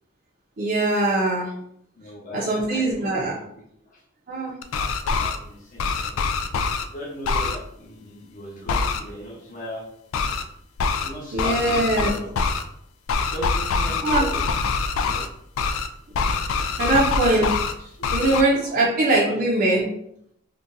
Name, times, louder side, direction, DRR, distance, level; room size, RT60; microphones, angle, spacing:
voice 1, 0.6-1.5 2.3-3.3 4.3-4.5 11.3-12.1 14.0-14.2 16.5-17.5 18.1-19.9, right 2 dB, 45° right, -4 dB, 0.5 m, -21 dB
voice 2, 2.0-3.4 3.8-4.0 4.7-6.2 6.9-9.9 11.0-12.3 13.3-14.4 14.7-15.2 16.6-17.1 18.0-18.3 19.1-19.4, right 1 dB, 40° left, -3 dB, 0.9 m, -38 dB
sound 1, 4.6-5.4 5.8-6.8 7.2-7.6 8.7-9.0 10.1-10.4 10.8-11.1 11.4-12.6 13.1-15.3 15.6-15.9 16.1-17.7 18.0-18.4, left 4 dB, 75° left, 0.3 m, -24 dB
3.7 x 2.2 x 2.6 m, 0.73 s
head